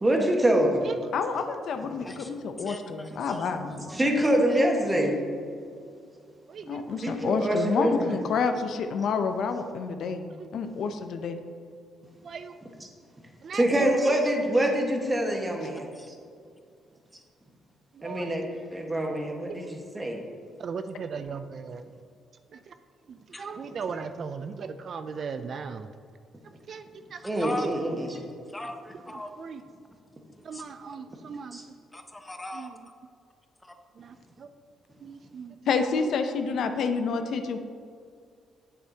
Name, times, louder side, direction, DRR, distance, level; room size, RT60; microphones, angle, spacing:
voice 1, 0.0-0.8 3.9-5.4 7.0-8.2 13.5-15.8 18.0-18.4 18.7-20.2 27.2-28.2 31.5-31.6, right 1 dB, 20° right, 1 dB, 1.4 m, -25 dB
voice 2, 1.1-3.8 6.7-11.4 35.7-37.6, left 5 dB, 70° left, 7 dB, 0.6 m, -29 dB
voice 3, 2.6-3.5 3.9-4.0 16.0-16.1 23.3-23.4 27.4-27.7 28.5-29.3 30.5-30.6 31.9-32.7, left 2 dB, 15° left, 6 dB, 0.8 m, -38 dB
voice 4, 6.5-7.0 12.2-12.5 13.4-14.2 17.9-18.3 20.6-21.8 22.5-22.7 23.1-25.9 26.7-26.9 27.1-27.7 28.6-28.7 29.1-29.6 30.4-31.6 32.5-32.9 34.0-34.5 35.0-35.8, right 5 dB, 55° right, 10 dB, 0.4 m, -38 dB
9.2 x 7.6 x 2.8 m, 2.2 s
cardioid pair, 90°, 0 cm